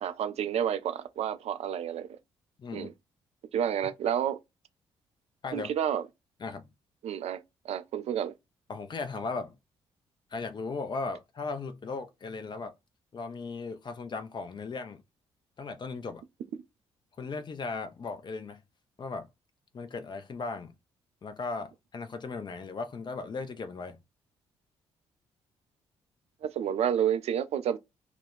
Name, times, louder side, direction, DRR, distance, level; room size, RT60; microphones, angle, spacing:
voice 1, 0.0-2.1 2.7-2.9 3.5-4.4 5.5-6.0 7.0-8.3 26.4-27.8, right 9 dB, 45° right, 0.4 m, -30 dB
voice 2, 2.6-2.9 5.4-5.7 6.4-6.7 8.7-9.5 10.3-12.7 13.1-15.0 15.6-16.2 17.2-18.6 19.0-19.3 19.7-20.7 21.2-24.0, left 4 dB, 30° left, 0.5 m, -37 dB
2.3 x 2.2 x 3.4 m
figure-of-eight pair, 40°, 14 cm